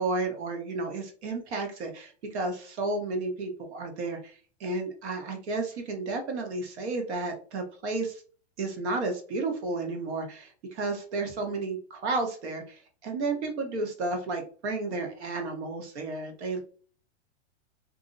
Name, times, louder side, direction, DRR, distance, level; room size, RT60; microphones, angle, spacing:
voice 1, 0.0-8.2 8.6-16.6, right 3 dB, 75° right, 3 dB, 1.0 m, -32 dB
2.6 x 2.0 x 2.5 m, 0.40 s
supercardioid pair, 175°, 34 cm